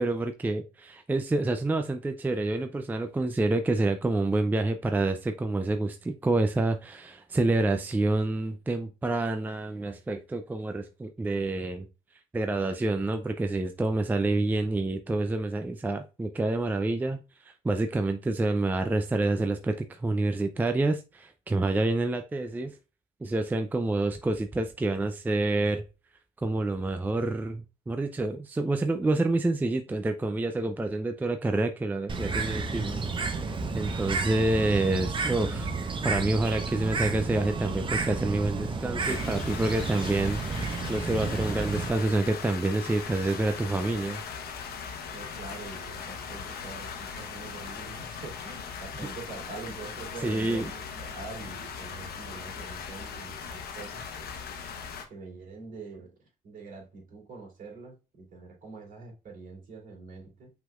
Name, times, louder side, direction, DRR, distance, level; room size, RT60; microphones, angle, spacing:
voice 1, 0.0-11.9 12.3-22.7 23.2-25.8 26.4-33.0 33.7-35.7 36.0-44.2 49.0-49.1 50.2-50.7, right 2 dB, 10° right, 0.4 m, -28 dB
Bird, 32.1-41.9, right 4 dB, 30° right, 0.9 m, -31 dB
sound 1, 39.0-55.0, left 6 dB, 65° left, 1.0 m, -39 dB
voice 2, 45.1-54.3 55.1-56.1 56.4-60.5, right 4 dB, 55° right, 2.9 m, -44 dB
5.7 x 3.8 x 2.4 m
cardioid pair, 110°, 17 cm